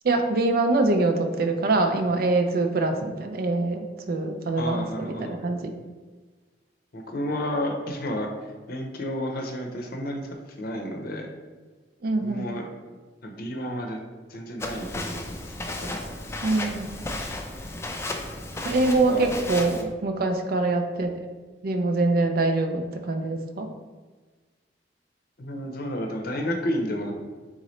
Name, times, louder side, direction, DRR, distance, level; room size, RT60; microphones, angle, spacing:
voice 1, 0.0-5.7 12.0-12.5 16.4-16.9 18.6-21.1 21.6-23.7, right 2 dB, 55° right, 6 dB, 0.4 m, -24 dB
voice 2, 4.6-5.4 6.9-11.3 12.2-12.7 13.2-14.0 14.3-16.0 16.4-16.7 18.9-19.3 25.4-27.1, left 1 dB, 55° left, 2 dB, 0.7 m, -31 dB
Walk footsteps, 14.6-19.8, left 2 dB, 15° left, 0.4 m, -34 dB
4.0 x 3.7 x 3.1 m, 1.3 s
head